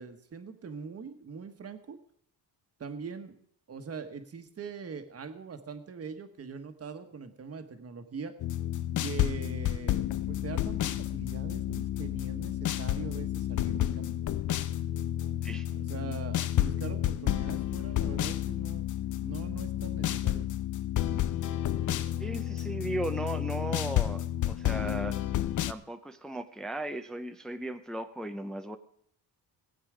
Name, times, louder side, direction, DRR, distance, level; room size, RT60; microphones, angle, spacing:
voice 1, 0.0-2.0 2.8-3.3 3.7-8.3 9.0-14.1 15.8-18.9 19.2-20.5, right 5 dB, 35° right, 8 dB, 1.3 m, -42 dB
sound 1, 8.4-25.7, left 12 dB, 50° left, 0.6 m, -31 dB
voice 2, 22.2-25.2 25.7-28.8, right 1 dB, ahead, 7 dB, 0.6 m, -36 dB
19.0 x 8.1 x 5.0 m, 0.67 s
cardioid pair, 125°, 39 cm